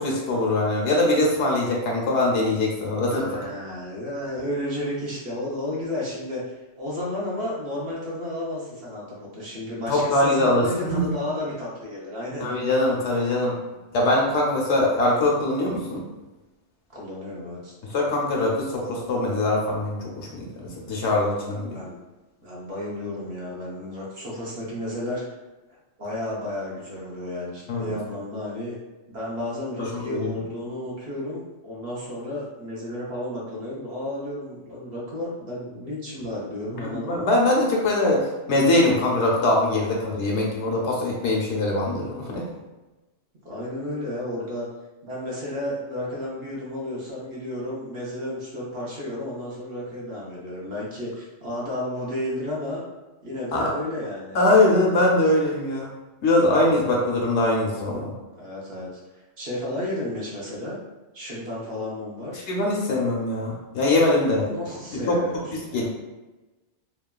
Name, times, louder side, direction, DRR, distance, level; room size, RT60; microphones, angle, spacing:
voice 1, 0.0-3.4 9.9-11.1 12.4-13.6 13.9-16.0 17.9-21.8 27.7-27.9 30.1-30.3 36.8-42.5 53.5-53.7 54.3-55.9 56.2-58.1 62.5-64.5 65.1-65.2 65.7-65.9, left 2 dB, 70° left, -2 dB, 0.9 m, -22 dB
voice 2, 3.2-6.4 6.8-12.5 16.9-17.7 21.7-22.0 22.4-25.4 26.0-28.8 29.1-37.3 43.4-44.7 45.0-52.8 53.2-54.4 58.3-60.8 61.1-62.5 64.3-65.9, left 1 dB, 60° right, -6 dB, 0.9 m, -32 dB
3.0 x 2.2 x 2.2 m, 1.1 s
omnidirectional pair, 1.2 m